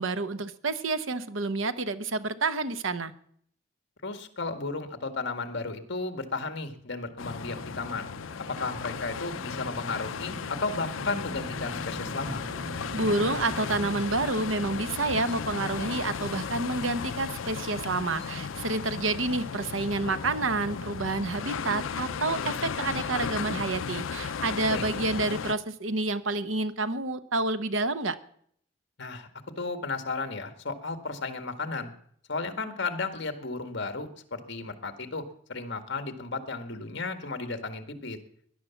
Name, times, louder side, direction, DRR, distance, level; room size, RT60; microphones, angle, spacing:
voice 1, 0.0-3.1 12.9-28.2, right 3 dB, 85° right, 11 dB, 1.1 m, -29 dB
voice 2, 4.0-8.1 8.5-12.4 24.7-24.8 29.0-29.3 29.6-31.9 32.3-38.2, left 3 dB, 60° left, 8 dB, 1.8 m, -34 dB
sound 1, 7.2-25.5, left 6 dB, 85° left, 0.6 m, -35 dB
sound 2, 7.5-14.0, right 1 dB, 40° right, 1.8 m, -42 dB
Chirp tweet, 11.3-23.5, left 1 dB, 20° right, 7.4 m, -51 dB
18.0 x 11.0 x 7.2 m, 0.66 s
head